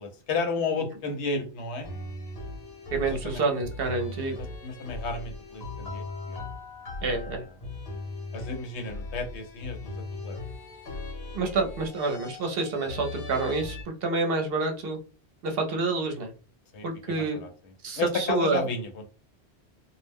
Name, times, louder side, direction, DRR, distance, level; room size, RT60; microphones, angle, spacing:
voice 1, 0.0-1.9 3.1-3.4 4.6-6.5 8.3-10.4 16.7-17.5 17.9-19.0, left 3 dB, 90° left, 5 dB, 1.0 m, -32 dB
sound 1, 1.8-13.8, left 2 dB, 65° left, 1.1 m, -39 dB
voice 2, 2.9-4.4 7.0-7.4 11.3-15.0 15.4-16.3 16.8-17.4 17.8-18.7, right 3 dB, 65° right, 4 dB, 0.8 m, -28 dB
2.3 x 2.0 x 3.4 m, 0.35 s
omnidirectional pair, 1.1 m